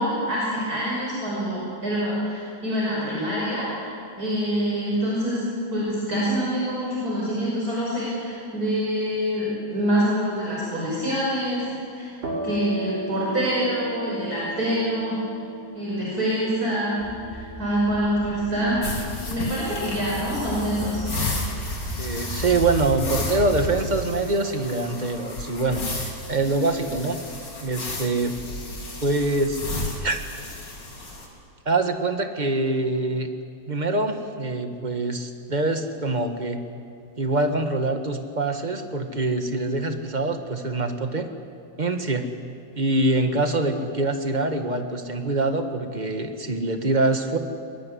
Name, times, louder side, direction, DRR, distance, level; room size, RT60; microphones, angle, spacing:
voice 1, 0.0-3.9 4.2-12.1 12.4-15.2 15.7-17.0 17.3-18.8 19.3-21.0, equal, 50° right, -6 dB, 6.2 m, -26 dB
sound 1, 12.2-19.7, right 2 dB, 70° right, 6.0 m, -37 dB
sound 2, 17.0-24.1, equal, 20° left, 2.8 m, -34 dB
sound 3, 18.8-31.3, left 2 dB, 65° left, 4.2 m, -33 dB
voice 2, 22.0-27.2 27.6-28.4 29.0-29.6 30.0-30.2 31.6-33.3 33.7-36.6 37.2-41.3 41.8-42.3 42.7-47.4, right 2 dB, 25° right, 6 dB, 1.6 m, -24 dB
23.5 x 20.5 x 9.9 m, 2.4 s
omnidirectional pair, 2.1 m